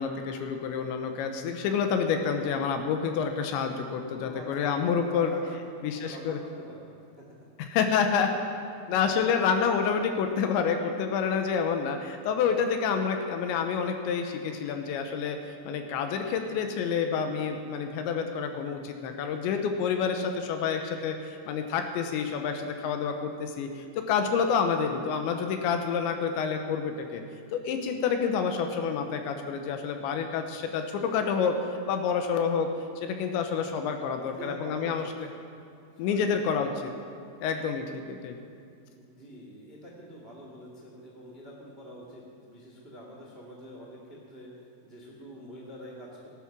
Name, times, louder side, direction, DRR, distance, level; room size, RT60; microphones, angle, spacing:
voice 1, 0.0-5.3 5.8-6.4 7.6-8.3 8.9-27.2 27.5-31.5 31.9-32.7 33.0-35.0 36.0-36.9 37.4-38.4, left 6 dB, 75° left, 5 dB, 2.9 m, -28 dB
voice 2, 4.2-7.2 34.2-35.1 36.0-36.5 39.0-46.3, equal, 45° right, -2 dB, 0.7 m, -45 dB
18.5 x 11.0 x 5.9 m, 2.5 s
omnidirectional pair, 5.7 m